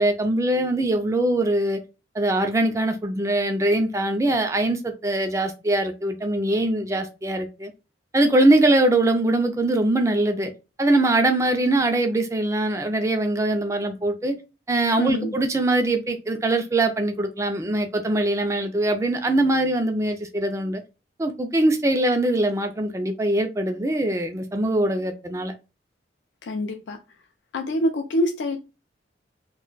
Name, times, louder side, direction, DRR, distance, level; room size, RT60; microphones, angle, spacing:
voice 1, 0.0-1.8 2.1-7.7 8.1-10.5 10.8-14.3 14.7-20.8 21.2-25.5, right 1 dB, 15° right, 0.3 m, -22 dB
voice 2, 15.0-15.4 26.4-27.0 27.5-28.6, left 1 dB, 75° left, 0.4 m, -25 dB
2.2 x 2.2 x 3.8 m
head